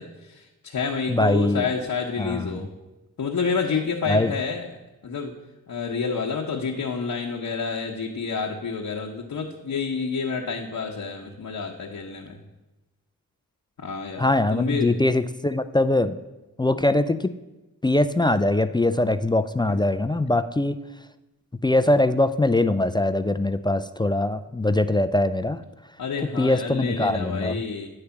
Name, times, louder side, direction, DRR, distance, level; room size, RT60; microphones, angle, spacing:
voice 1, 0.0-2.7 3.2-4.6 5.0-5.3 5.7-12.4 13.8-14.9 19.7-19.8 26.0-27.9, left 5 dB, 60° left, -1 dB, 0.9 m, -29 dB
voice 2, 1.1-1.7 2.2-2.6 4.1-4.3 14.2-16.2 16.6-17.3 17.8-20.8 21.6-25.6 26.4-27.6, left 2 dB, 15° left, 11 dB, 0.3 m, -22 dB
9.6 x 3.3 x 6.9 m, 1.0 s
cardioid pair, 50°, 36 cm